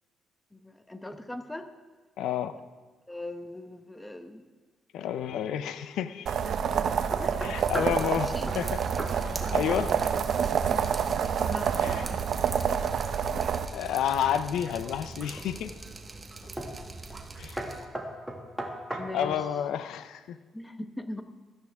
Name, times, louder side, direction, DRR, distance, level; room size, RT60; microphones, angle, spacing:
voice 1, 0.5-1.7 3.1-4.5 6.4-6.5 7.2-7.5 8.0-8.5 11.5-12.3 19.0-19.4 20.5-21.2, left 1 dB, 10° left, 8 dB, 1.1 m, -40 dB
voice 2, 2.2-2.6 4.9-6.4 7.4-8.8 9.2-9.9 11.8-12.1 13.7-15.7 17.4-17.6 18.9-20.4, left 9 dB, 85° left, 12 dB, 0.6 m, -30 dB
sound 1, 6.3-13.7, right 7 dB, 65° right, 0.8 m, -28 dB
sound 2, 7.1-8.0 8.5-8.7 9.0-9.2 9.4-10.1 10.4-10.8 14.1-14.8 15.4-15.8 16.6-16.8 17.1-17.3 17.6-19.4, right 1 dB, 5° right, 2.0 m, -37 dB
Drip, 7.6-17.9, right 3 dB, 25° right, 1.3 m, -42 dB
16.5 x 13.0 x 3.6 m, 1.4 s
cardioid pair, 90°, 0 cm